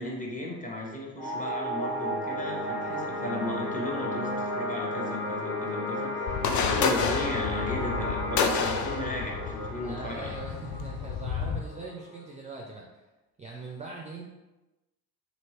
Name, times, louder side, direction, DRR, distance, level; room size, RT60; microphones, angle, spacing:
voice 1, 0.0-10.4, left 1 dB, 15° left, -3 dB, 0.9 m, -36 dB
sound 1, 1.2-12.2, left 1 dB, 90° left, 1.0 m, -33 dB
sound 2, 6.3-11.6, left 6 dB, 40° left, 0.5 m, -30 dB
voice 2, 9.8-13.0 13.4-14.2, right 3 dB, 15° right, -2 dB, 0.4 m, -41 dB
2.9 x 2.8 x 3.0 m, 1.0 s
hypercardioid pair, 50°, 46 cm